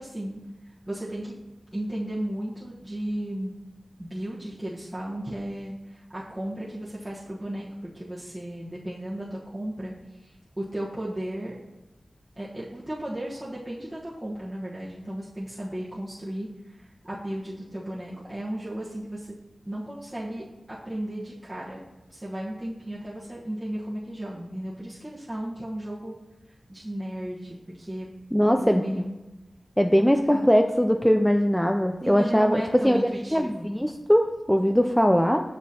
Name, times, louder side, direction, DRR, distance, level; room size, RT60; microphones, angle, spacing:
voice 1, 0.0-1.4 1.7-3.5 4.0-9.9 10.2-11.6 12.4-19.3 19.6-21.8 22.1-26.1 26.7-28.1 28.5-29.2 30.0-30.5 32.0-33.7, right 1 dB, 20° right, -8 dB, 1.1 m, -35 dB
voice 2, 28.3-29.1 29.8-33.0 33.3-35.4, equal, 5° left, 4 dB, 0.4 m, -21 dB
7.5 x 5.5 x 2.8 m, 1.1 s
cardioid pair, 45°, 0 cm